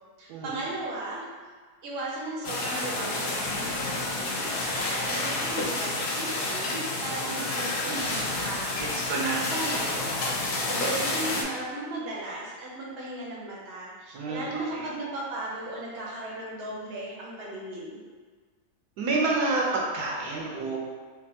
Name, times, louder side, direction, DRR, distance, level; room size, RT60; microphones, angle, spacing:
voice 1, 0.2-1.3 1.8-8.7 9.2-10.1 10.7-18.0, right 2 dB, 50° right, -5 dB, 0.7 m, -36 dB
sound 1, 2.4-11.4, left 2 dB, 80° left, 0.5 m, -29 dB
voice 2, 8.8-9.4 14.1-14.9 19.0-20.8, right 3 dB, 80° right, -3 dB, 1.1 m, -29 dB
3.3 x 2.5 x 2.6 m, 1.5 s
omnidirectional pair, 1.7 m